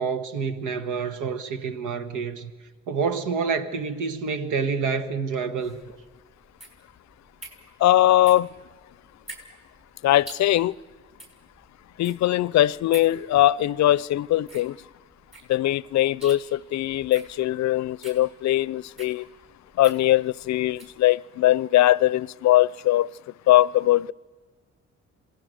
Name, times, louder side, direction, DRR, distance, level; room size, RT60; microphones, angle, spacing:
voice 1, 0.0-2.5 2.9-6.0, right 5 dB, 85° right, 1.5 m, -28 dB
sound 1, 5.6-21.0, right 2 dB, 20° right, 6.3 m, -47 dB
voice 2, 7.8-8.5 10.0-10.7 12.0-14.8 15.5-19.3 19.8-23.1 23.5-24.1, left 14 dB, 65° left, 0.5 m, -21 dB
27.0 x 18.0 x 6.5 m
cardioid pair, 90°, 30 cm